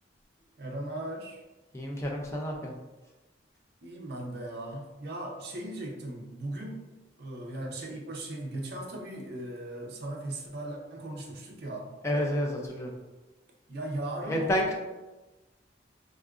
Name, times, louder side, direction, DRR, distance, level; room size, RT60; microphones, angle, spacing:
voice 1, 0.6-1.4 3.8-6.8 7.2-11.9 13.7-14.7, right 1 dB, 55° right, 0 dB, 0.5 m, -38 dB
voice 2, 1.7-2.7 12.0-12.9 14.3-14.7, equal, 15° left, -1 dB, 0.4 m, -29 dB
3.6 x 2.4 x 2.3 m, 1.1 s
head